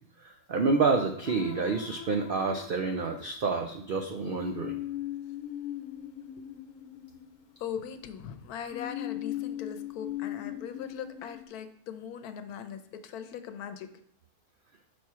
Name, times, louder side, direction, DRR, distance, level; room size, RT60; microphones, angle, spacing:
voice 1, 0.2-4.8, right 4 dB, 80° right, 5 dB, 0.4 m, -28 dB
sound 1, 1.2-3.4 4.2-7.9 8.7-11.5, left 12 dB, 70° left, 1.0 m, -39 dB
voice 2, 7.6-13.9, left 8 dB, 90° left, 10 dB, 1.2 m, -40 dB
6.1 x 4.3 x 4.7 m, 0.67 s
omnidirectional pair, 1.6 m